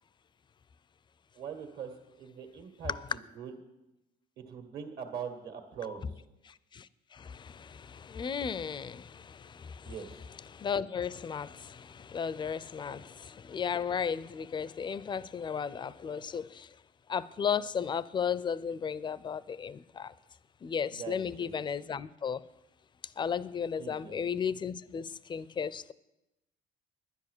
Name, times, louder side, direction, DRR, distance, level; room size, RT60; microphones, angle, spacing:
voice 1, 1.4-3.5 4.4-6.2 9.8-10.1 12.9-13.0 21.0-21.5 23.8-24.2, right 7 dB, 65° right, 6 dB, 2.0 m, -42 dB
voice 2, 6.4-10.0 10.5-16.7 17.1-20.1 20.6-22.4 23.2-25.9, left 7 dB, 25° left, 19 dB, 0.4 m, -35 dB
11.0 x 10.5 x 6.7 m, 0.95 s
cardioid pair, 110°, 17 cm